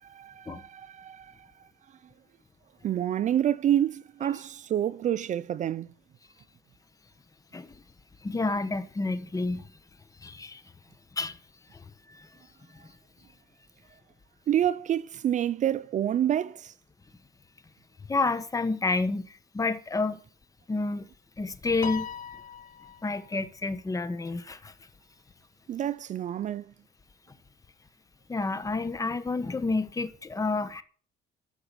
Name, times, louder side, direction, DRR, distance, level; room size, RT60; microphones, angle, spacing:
voice 1, 0.0-2.0 2.8-5.9 14.5-16.7 25.7-26.7, right 10 dB, 45° right, 0.5 m, -28 dB
voice 2, 8.2-9.7 10.2-10.6 11.2-11.4 11.7-12.3 12.7-12.8 18.1-20.2 20.7-21.1 21.4-22.1 23.0-24.7 28.3-30.8, left 3 dB, 20° left, 1.3 m, -30 dB
Piano, 21.8-23.4, left 9 dB, 50° left, 0.8 m, -39 dB
13.5 x 5.9 x 8.9 m
cardioid pair, 110°, 17 cm